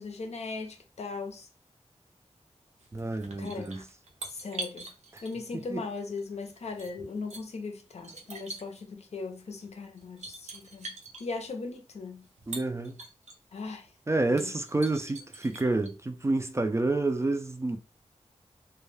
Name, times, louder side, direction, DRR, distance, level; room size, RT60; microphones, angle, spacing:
voice 1, 0.0-1.5 3.4-3.7 4.3-4.9 5.2-12.3 13.5-13.9 14.3-14.6, left 4 dB, 70° left, 0.5 m, -38 dB
sound 1, 2.8-5.6 6.2-7.4 8.0-8.8 9.6-9.7 10.0-11.2 12.2-13.3 13.8-13.9 14.3-15.9, right 2 dB, 75° right, 0.6 m, -43 dB
voice 2, 2.9-3.8 5.1-5.2 5.7-5.8 12.5-13.0 14.1-17.8, right 2 dB, 25° right, 0.3 m, -29 dB
2.2 x 2.1 x 3.1 m
wide cardioid pair, 75°, 12 cm